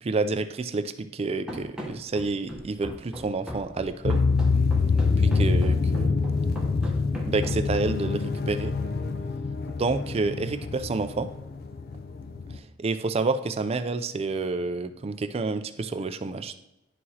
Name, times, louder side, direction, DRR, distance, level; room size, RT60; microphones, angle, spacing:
voice 1, 0.0-4.2 5.2-6.2 7.2-8.7 9.8-11.3 12.5-16.6, right 3 dB, 30° right, 10 dB, 0.4 m, -29 dB
Run, 1.5-8.1, equal, 5° right, 0.9 m, -38 dB
sound 1, 4.0-12.6, left 4 dB, 50° left, 0.4 m, -25 dB
11.0 x 4.7 x 2.8 m, 0.89 s
head